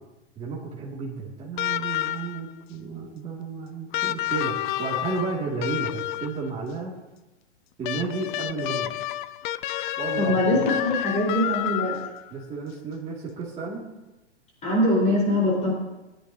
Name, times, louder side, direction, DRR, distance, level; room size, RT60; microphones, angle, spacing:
voice 1, 0.4-6.9 7.8-8.9 10.0-10.3 12.3-13.8, right 4 dB, 15° right, -5 dB, 2.3 m, -32 dB
sound 1, 1.6-2.5 3.9-6.5 7.8-12.3 13.7-13.8, left 13 dB, 45° left, 0.5 m, -29 dB
voice 2, 10.2-12.0 14.6-15.7, left 1 dB, 20° left, -4 dB, 4.4 m, -23 dB
21.5 x 10.5 x 2.8 m, 1.0 s
hypercardioid pair, 130°, 35 cm